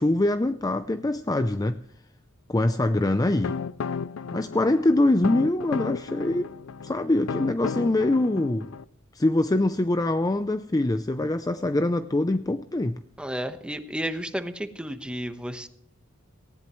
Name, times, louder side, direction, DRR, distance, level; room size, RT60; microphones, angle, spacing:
voice 1, 0.0-1.8 2.5-3.6 4.3-6.5 6.8-8.7 9.1-13.0, left 2 dB, 20° left, 0.5 m, -24 dB
sound 1, 3.0-8.8, left 5 dB, 85° left, 0.5 m, -34 dB
voice 2, 13.2-15.7, equal, 5° right, 1.1 m, -32 dB
18.5 x 16.5 x 3.1 m
head